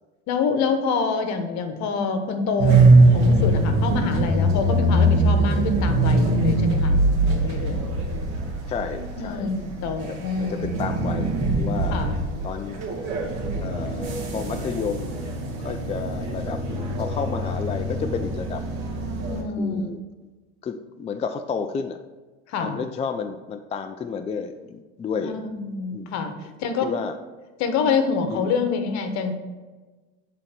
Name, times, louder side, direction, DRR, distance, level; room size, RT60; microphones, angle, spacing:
voice 1, 0.3-7.0 7.3-7.8 9.2-10.8 11.9-12.2 19.3-19.8 22.5-22.8 25.2-26.3 26.6-26.9 27.6-29.4, left 5 dB, 55° left, 7 dB, 1.2 m, -26 dB
sound 1, 2.6-19.4, right 2 dB, 60° right, 2.0 m, -22 dB
voice 2, 8.7-9.5 10.4-12.0 12.4-12.8 13.6-15.2 15.6-18.6 19.6-20.0 20.6-22.0 22.6-25.4 25.9-26.2 26.8-27.2 28.3-28.5, left 6 dB, 20° left, 7 dB, 0.4 m, -31 dB
8.7 x 4.1 x 4.4 m, 1.3 s
supercardioid pair, 105°, 32 cm